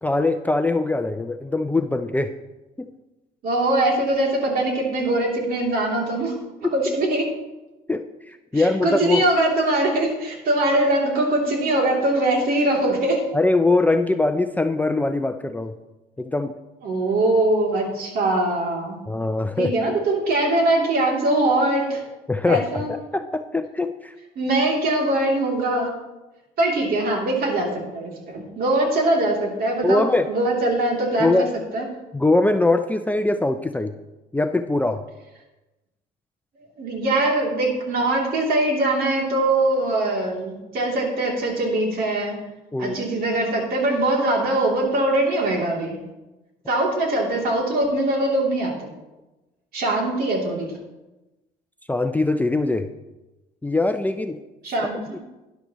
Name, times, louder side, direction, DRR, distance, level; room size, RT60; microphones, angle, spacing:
voice 1, 0.0-2.3 2.8-2.9 6.6-6.7 7.9-9.2 13.3-15.7 16.2-16.5 19.1-19.7 22.3-24.1 29.8-30.3 31.2-31.5 32.1-33.9 34.3-35.0 42.7-43.0 51.9-52.9 53.6-54.4, left 2 dB, 10° left, 7 dB, 0.5 m, -22 dB
voice 2, 3.4-6.3 6.6-7.3 8.5-13.3 16.8-19.0 19.6-22.0 22.5-22.9 24.4-25.9 26.6-31.5 31.7-31.9 36.8-42.4 42.8-46.0 46.7-48.9 49.7-50.7 54.6-55.2, right 2 dB, 60° right, -1 dB, 3.0 m, -22 dB
13.0 x 10.5 x 3.1 m, 1.1 s
cardioid pair, 110°, 17 cm